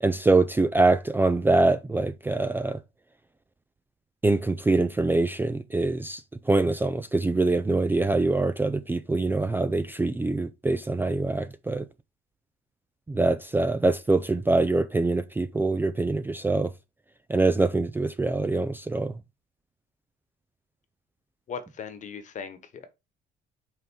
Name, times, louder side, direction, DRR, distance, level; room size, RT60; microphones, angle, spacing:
voice 1, 0.0-2.8 4.2-11.8 13.1-16.7 17.3-19.1, right 3 dB, 10° right, 0.4 m, -24 dB
voice 2, 21.5-22.9, left 6 dB, 45° left, 1.2 m, -38 dB
5.6 x 3.7 x 4.7 m
cardioid pair, 110°, 17 cm